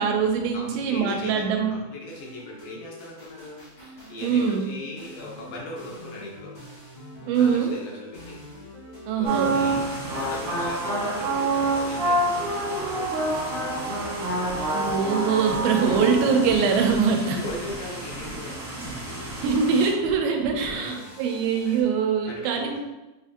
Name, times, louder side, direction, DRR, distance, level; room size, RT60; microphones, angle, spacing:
voice 1, 0.0-1.8 4.2-4.7 7.3-7.8 9.1-9.6 14.7-17.4 19.4-22.8, right 6 dB, 90° right, 3 dB, 2.4 m, -23 dB
voice 2, 0.5-6.5 7.3-8.4 9.2-9.8 10.1-13.6 17.3-18.5 20.5-21.2 21.7-21.8 22.2-22.8, left 2 dB, 90° left, -4 dB, 2.9 m, -39 dB
sound 1, 2.1-21.8, left 1 dB, 65° left, 0.7 m, -43 dB
sound 2, 9.2-19.9, right 2 dB, 55° right, 0.9 m, -28 dB
7.0 x 2.5 x 2.7 m, 1.0 s
omnidirectional pair, 4.1 m